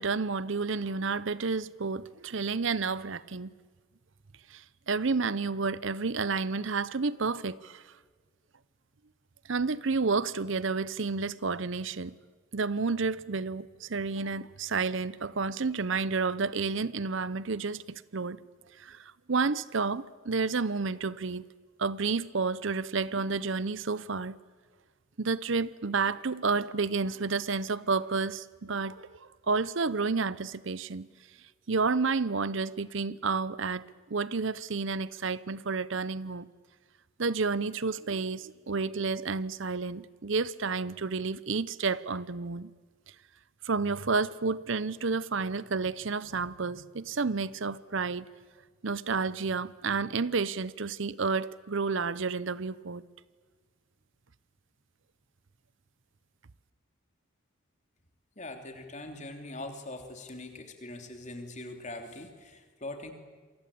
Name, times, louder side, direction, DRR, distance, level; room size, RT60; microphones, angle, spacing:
voice 1, 0.0-3.5 4.5-7.9 9.5-12.1 12.5-17.8 18.1-18.4 18.8-21.4 21.8-24.4 25.2-31.1 31.7-33.8 34.1-36.5 37.2-42.7 43.6-48.3 48.8-53.0, right 4 dB, 65° right, 0.7 m, -30 dB
voice 2, 58.3-63.1, left 2 dB, 35° left, 3.2 m, -42 dB
28.0 x 24.0 x 8.5 m
head